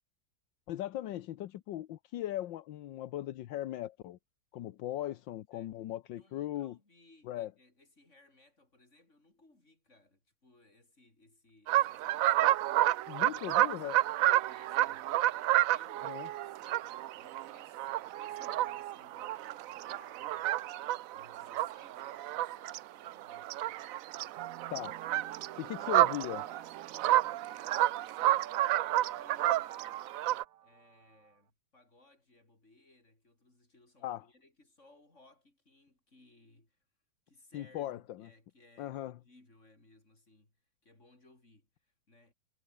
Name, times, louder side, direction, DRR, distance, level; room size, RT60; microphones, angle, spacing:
voice 1, 0.7-4.2 4.5-6.8 7.3-7.5 13.1-14.0 16.0-16.3 24.7-25.0 25.6-26.4 34.0-34.2 37.5-38.3 38.8-39.2, left 13 dB, 80° left, 1.6 m, -38 dB
voice 2, 6.1-23.8 25.2-29.9 30.6-36.8 37.3-40.6 40.8-42.3, left 2 dB, 40° left, 5.9 m, -63 dB
sound 1, 11.7-22.8 23.1-30.4, right 14 dB, 80° right, 0.7 m, -30 dB
sound 2, 24.4-31.4, right 11 dB, 60° right, 1.2 m, -51 dB
omnidirectional pair, 2.0 m